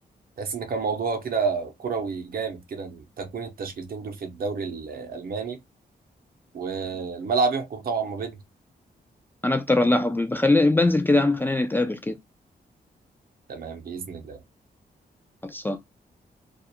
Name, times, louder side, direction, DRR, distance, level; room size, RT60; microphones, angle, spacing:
voice 1, 0.4-5.6 6.5-8.4 13.5-14.4, right 5 dB, 60° right, 0.7 m, -29 dB
voice 2, 9.4-12.2 15.4-15.8, left 2 dB, 10° left, 0.3 m, -21 dB
2.4 x 2.0 x 2.7 m
wide cardioid pair, 110°, 17 cm